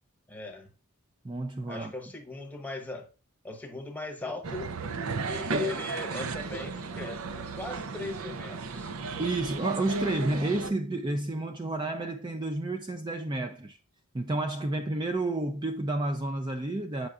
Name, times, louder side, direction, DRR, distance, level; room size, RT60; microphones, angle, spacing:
voice 1, 0.3-0.7 1.7-3.1 3.4-4.7 5.2-7.3 7.5-8.9, left 2 dB, 10° left, 0.9 m, -38 dB
voice 2, 1.2-1.9 5.5-5.7 9.2-13.8 14.1-17.1, right 2 dB, 20° right, 0.4 m, -30 dB
sound 1, 4.4-10.7, right 3 dB, 85° right, 0.6 m, -34 dB
7.8 x 5.5 x 2.4 m
head